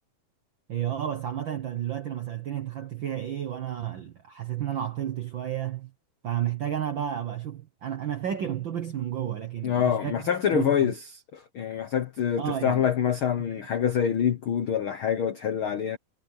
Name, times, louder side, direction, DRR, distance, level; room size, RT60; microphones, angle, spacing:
voice 1, 0.7-5.9 6.2-10.2 10.5-10.9 12.4-12.9 13.5-13.6, right 10 dB, 85° right, 1.0 m, -31 dB
voice 2, 9.6-11.0 11.3-16.0, left 8 dB, 65° left, 1.3 m, -26 dB
omnidirectional pair, 3.8 m